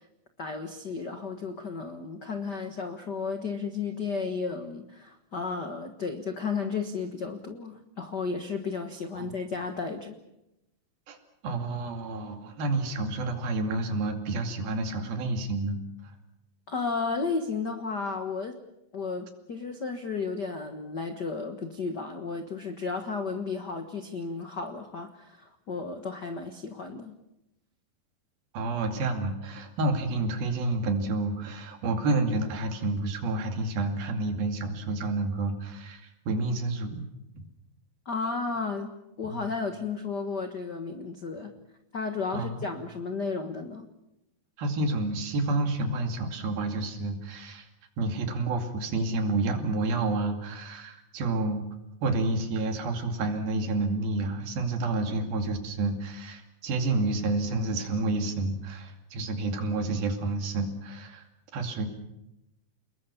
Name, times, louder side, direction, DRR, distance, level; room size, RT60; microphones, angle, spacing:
voice 1, 0.4-10.1 16.7-18.6 18.9-27.1 38.0-38.9 39.2-41.5 41.9-43.9, left 4 dB, 75° left, 6 dB, 0.9 m, -33 dB
voice 2, 11.4-15.8 16.0-16.1 28.5-37.1 37.4-37.5 39.3-39.4 42.3-42.7 44.6-47.7 48.0-51.6 52.0-61.3 61.5-61.9, right 2 dB, 70° right, 5 dB, 4.3 m, -29 dB
29.0 x 21.0 x 7.1 m, 0.90 s
omnidirectional pair, 4.4 m